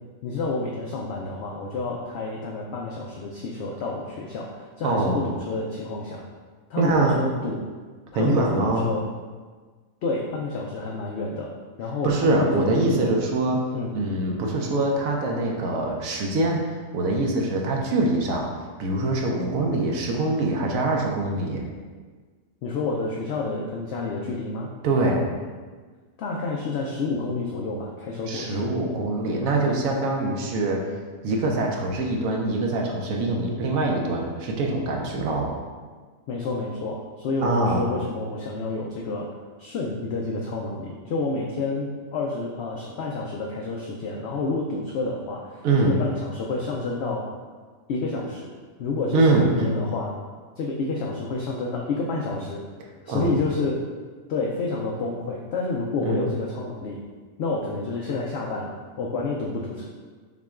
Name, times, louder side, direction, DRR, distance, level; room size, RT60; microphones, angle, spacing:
voice 1, 0.2-6.2 6.7-7.6 8.1-9.1 10.0-11.5 11.8-13.2 13.7-13.9 22.6-24.7 26.2-28.7 36.3-39.3 39.6-47.3 47.9-48.5 48.8-50.1 50.6-52.6 53.0-53.8 54.3-57.0 57.4-59.8, left 3 dB, 65° left, -2 dB, 0.6 m, -29 dB
voice 2, 4.8-5.2 6.8-7.2 8.1-8.9 12.0-13.6 13.9-16.6 16.9-18.5 18.8-21.7 24.8-25.3 28.3-30.8 31.2-35.5 37.4-37.9 45.6-46.0 49.1-49.9 53.1-53.3 56.0-56.3, right 2 dB, 75° right, 0 dB, 1.1 m, -23 dB
5.9 x 2.2 x 3.6 m, 1.5 s
omnidirectional pair, 1.5 m